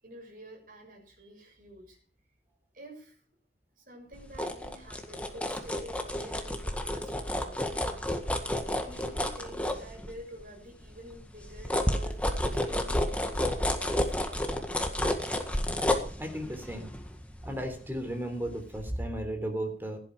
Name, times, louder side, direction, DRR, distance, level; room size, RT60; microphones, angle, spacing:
voice 1, 0.0-2.0 2.7-3.2 3.8-8.4 8.7-12.2 12.5-14.4, equal, 50° right, 1 dB, 6.5 m, -49 dB
sound 1, 4.1-10.4 10.8-18.4 18.8-18.9, left 1 dB, 10° left, 1.7 m, -31 dB
voice 2, 16.2-16.9 17.4-20.0, right 1 dB, 10° right, 5 dB, 3.5 m, -35 dB
16.5 x 11.5 x 4.8 m, 0.43 s
head